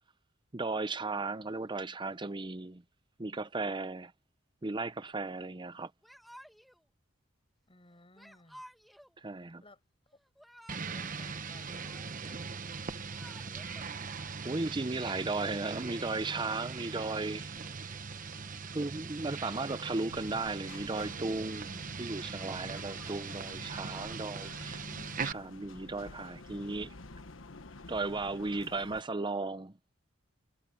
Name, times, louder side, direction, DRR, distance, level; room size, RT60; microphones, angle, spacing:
voice 1, 0.5-2.8 3.2-4.1 4.6-5.9 9.2-9.6 13.6-13.9 14.4-17.5 18.7-24.9 25.2-26.9 27.9-29.8, right 3 dB, 25° right, 0.7 m, -36 dB
Yell / Crying sobbing, 6.0-6.8 8.2-9.1 10.2-11.1 11.4-12.4 12.9-13.8, equal, ahead, 1.7 m, -54 dB
voice 2, 7.7-8.6 9.6-9.8 10.9-13.1, left 2 dB, 30° left, 7.5 m, -59 dB
sound 1, 10.7-25.3, right 5 dB, 40° right, 1.0 m, -40 dB
sound 2, 20.1-29.0, left 3 dB, 75° left, 1.3 m, -50 dB
head